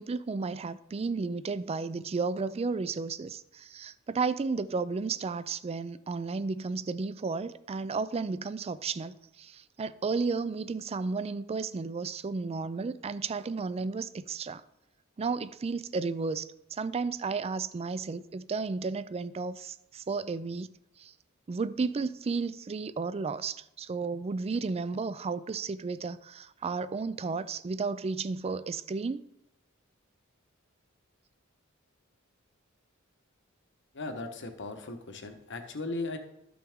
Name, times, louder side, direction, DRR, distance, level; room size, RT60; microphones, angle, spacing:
voice 1, 0.0-14.6 15.2-20.7 21.0-21.1 21.5-29.2, right 4 dB, 30° right, 0.4 m, -33 dB
voice 2, 33.9-36.2, left 2 dB, 60° left, 1.1 m, -37 dB
13.0 x 6.0 x 3.6 m
head